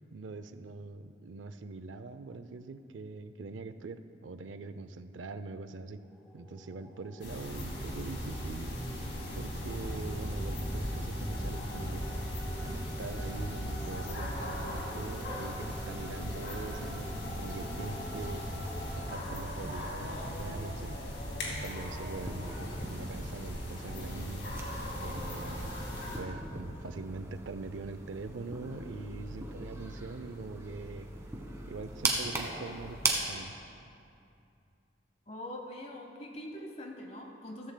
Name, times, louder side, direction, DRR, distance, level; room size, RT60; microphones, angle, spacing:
voice 1, 0.1-6.0 6.3-8.8 9.3-12.3 12.6-18.5 18.9-21.0 21.5-24.4 25.0-25.7 26.2-31.1 31.6-33.5, right 3 dB, 80° right, 11 dB, 0.5 m, -43 dB
sound 1, 6.0-19.2, equal, ahead, 0.6 m, -43 dB
sound 2, 7.2-26.2, equal, 70° left, 2.7 m, -38 dB
sound 3, 22.2-33.1, right 3 dB, 15° right, 1.3 m, -39 dB
voice 2, 35.3-37.7, left 1 dB, 35° left, 2 dB, 0.9 m, -43 dB
15.0 x 14.5 x 2.2 m, 2.6 s
head